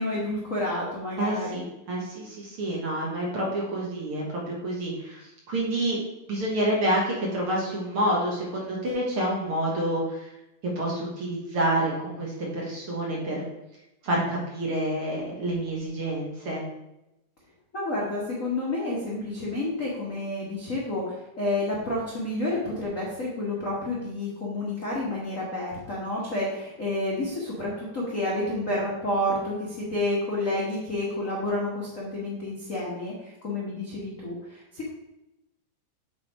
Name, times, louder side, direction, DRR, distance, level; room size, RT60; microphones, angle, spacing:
voice 1, 0.0-1.6 17.7-34.9, left 1 dB, 45° left, -5 dB, 1.0 m, -30 dB
voice 2, 1.2-6.0 6.3-10.3 10.6-13.4 14.0-16.6, right 1 dB, 50° right, -3 dB, 2.0 m, -28 dB
8.1 x 3.9 x 4.8 m, 0.92 s
omnidirectional pair, 3.6 m